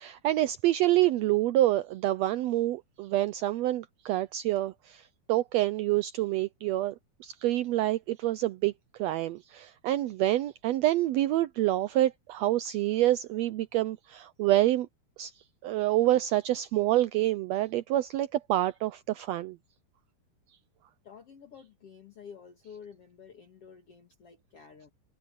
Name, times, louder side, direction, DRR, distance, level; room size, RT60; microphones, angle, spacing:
voice 1, 0.0-6.9 7.2-8.7 9.0-14.9 15.2-15.3 15.6-19.6, right 15 dB, 85° right, 1.5 m, -27 dB
voice 2, 21.0-24.9, left 6 dB, 50° left, 2.9 m, -50 dB
omnidirectional pair, 3.7 m